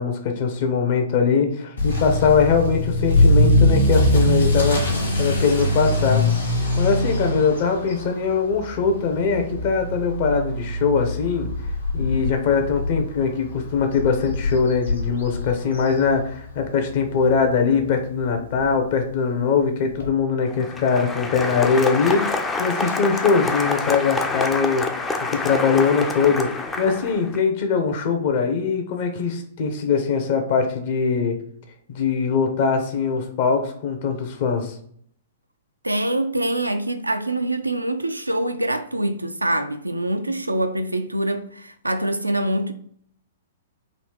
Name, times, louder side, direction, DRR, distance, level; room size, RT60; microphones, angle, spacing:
voice 1, 0.0-4.8 5.2-6.2 6.8-11.5 11.9-31.4 31.9-34.7, left 5 dB, 45° left, 0.8 m, -22 dB
Motor vehicle (road) / Accelerating revving vroom, 1.8-16.6 16.9-17.3 17.8-17.9 18.2-18.3 18.6-18.7 20.0-20.1, left 1 dB, 70° left, 1.3 m, -22 dB
Applause, 20.5-27.4, left 3 dB, 15° left, 0.4 m, -27 dB
voice 2, 35.8-42.7, right 1 dB, 85° right, 0.4 m, -24 dB
4.1 x 2.8 x 3.4 m
figure-of-eight pair, 110°, 0 cm